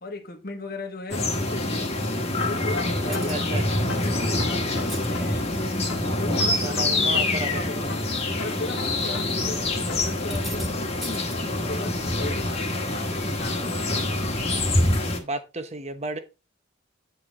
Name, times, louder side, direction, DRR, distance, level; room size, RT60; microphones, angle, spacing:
voice 1, 0.0-1.9 2.4-3.5 3.8-5.5 6.2-6.8 7.3-7.9 8.4-11.2 11.7-14.1, left 2 dB, 45° left, 1.4 m, -37 dB
sound 1, 1.1-15.2, left 2 dB, 30° left, 1.5 m, -26 dB
sound 2, 2.4-3.5 3.9-5.5 5.9-7.5 7.9-9.5 9.9-10.2, left 4 dB, 75° left, 1.7 m, -37 dB
sound 3, 3.1-3.5 4.7-5.1 5.8-6.2 6.7-7.1 7.4-7.5 8.4-8.5 10.1-10.7 11.0-11.3, equal, ahead, 1.5 m, -39 dB
voice 2, 3.1-3.9 6.6-7.6 15.2-16.2, right 2 dB, 30° right, 1.0 m, -33 dB
9.8 x 4.2 x 4.7 m
head